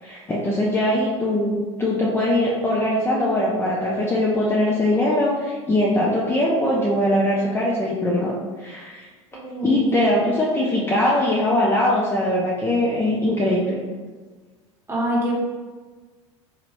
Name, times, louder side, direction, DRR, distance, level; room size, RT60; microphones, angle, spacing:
voice 1, 0.0-8.3 8.6-9.1 9.6-13.8, left 1 dB, 15° left, -5 dB, 0.6 m, -21 dB
voice 2, 9.3-10.1 14.9-15.3, equal, 15° right, -5 dB, 1.4 m, -25 dB
4.2 x 3.0 x 2.6 m, 1.4 s
figure-of-eight pair, 75°, 16 cm